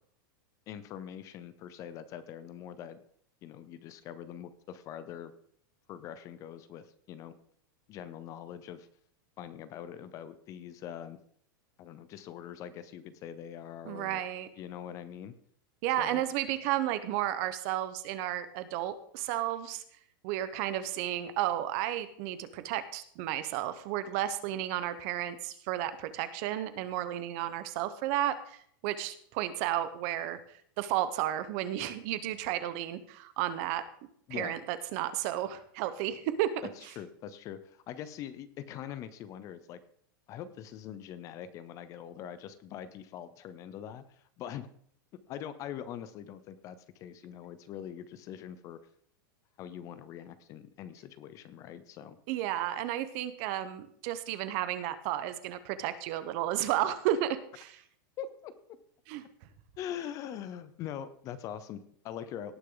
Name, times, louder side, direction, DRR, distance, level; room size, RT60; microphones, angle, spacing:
voice 1, 0.7-3.0 3.4-5.3 5.9-7.3 7.9-8.9 9.4-11.2 11.8-14.2 14.6-15.4 16.0-16.2 34.3-34.6 36.8-39.8 40.3-44.7 45.3-48.8 49.6-52.2 58.2-58.5 59.8-62.6, left 9 dB, 30° left, 14 dB, 0.6 m, -43 dB
voice 2, 13.8-14.5 15.8-19.8 20.2-30.4 30.8-33.8 34.3-36.6 52.3-57.8 59.1-59.2, right 12 dB, 45° right, 13 dB, 1.0 m, -32 dB
18.0 x 6.4 x 3.9 m, 0.63 s
supercardioid pair, 160°, 12 cm